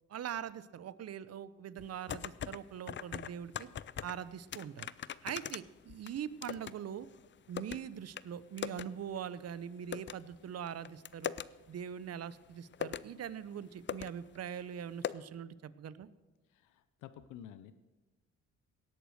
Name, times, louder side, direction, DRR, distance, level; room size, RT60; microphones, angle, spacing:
voice 1, 0.1-3.7 4.0-4.9 5.2-7.1 7.5-11.3 11.7-16.1, right 9 dB, 55° right, 17 dB, 0.8 m, -42 dB
sound 1, 1.8-2.6 2.9-4.2 4.5-6.7 7.0-7.8 8.2-8.3 8.6-8.9 9.2-9.3 9.9-10.1 10.7-11.5 12.3-12.4 12.7-13.1 13.6-13.7 13.9-14.1 14.4-14.5 15.0-15.1, left 9 dB, 40° left, 0.5 m, -39 dB
voice 2, 16.5-17.7, left 10 dB, 90° left, 12 dB, 0.8 m, -51 dB
18.0 x 8.2 x 6.4 m, 1.2 s
cardioid pair, 90°, 30 cm